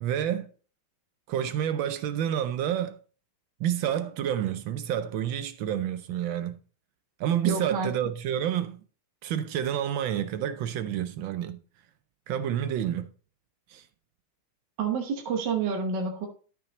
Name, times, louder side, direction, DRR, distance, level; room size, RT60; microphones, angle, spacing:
voice 1, 0.0-0.5 1.3-3.0 3.6-6.6 7.2-8.8 9.2-11.6 12.3-13.1 13.7-13.9, right 10 dB, 75° right, 1.3 m, -29 dB
voice 2, 7.4-7.9 14.8-16.3, right 5 dB, 60° right, 1.6 m, -28 dB
12.5 x 5.7 x 3.0 m
omnidirectional pair, 2.4 m